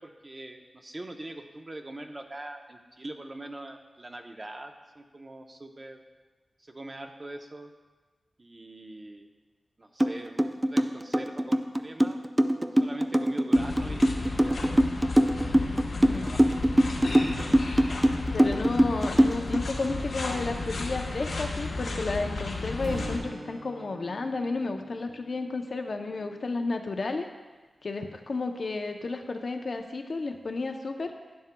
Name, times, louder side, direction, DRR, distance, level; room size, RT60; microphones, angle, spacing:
voice 1, 0.0-6.0 6.6-7.7 8.4-9.3 9.8-12.2 12.7-14.0 14.3-14.6 15.3-15.6 15.9-16.4, right 1 dB, 35° right, 4 dB, 0.8 m, -43 dB
sound 1, 10.0-10.1 10.4-19.6, right 1 dB, 15° right, 0.4 m, -22 dB
sound 2, 13.5-23.2, left 3 dB, 85° left, 1.2 m, -33 dB
voice 2, 15.9-16.3 18.3-27.3 27.8-31.1, left 3 dB, 60° left, 5 dB, 0.6 m, -32 dB
Acoustic guitar / Strum, 22.8-26.7, right 2 dB, 75° right, 0.9 m, -46 dB
11.0 x 9.6 x 2.2 m, 1.3 s
wide cardioid pair, 85°, 0 cm